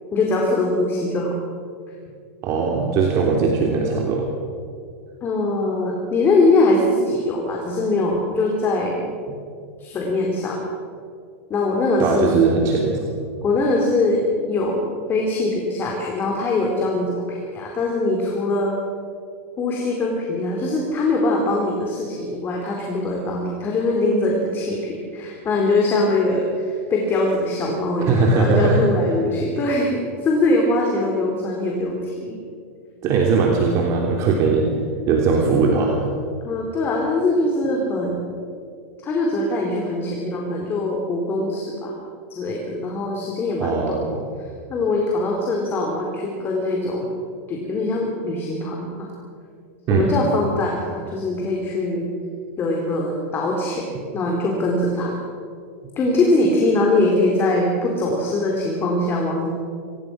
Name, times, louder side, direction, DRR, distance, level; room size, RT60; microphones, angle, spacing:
voice 1, 0.1-1.3 5.2-9.0 9.8-10.7 11.5-12.3 13.4-14.2 14.5-18.8 19.6-32.4 36.4-38.3 39.0-41.9 42.3-44.0 44.7-47.0 47.5-49.1 49.9-52.1 52.6-53.8 54.1-55.2 56.0-59.5, left 2 dB, 30° left, 0 dB, 4.0 m, -22 dB
voice 2, 2.4-4.3 12.0-13.0 28.0-28.8 33.0-34.7 35.1-36.0 43.6-44.2 49.9-50.1, right 4 dB, 45° right, 0 dB, 3.3 m, -19 dB
26.5 x 17.5 x 6.3 m, 2.3 s
hypercardioid pair, 120°, 8 cm